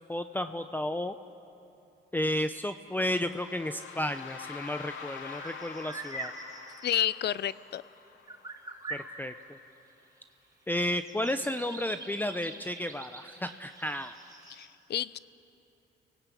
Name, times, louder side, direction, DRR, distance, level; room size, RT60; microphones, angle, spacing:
voice 1, 0.1-1.1 2.1-6.3 8.9-9.6 10.7-14.1, left 1 dB, 10° left, 9 dB, 0.7 m, -32 dB
sound 1, 3.1-9.0, left 6 dB, 75° left, 2.4 m, -46 dB
sound 2, 3.9-8.0 8.3-14.7, right 2 dB, 20° right, 6.4 m, -45 dB
voice 2, 6.8-7.8 14.5-15.2, left 11 dB, 55° left, 19 dB, 0.6 m, -30 dB
29.5 x 19.0 x 8.4 m, 2.8 s
cardioid pair, 90°, 20 cm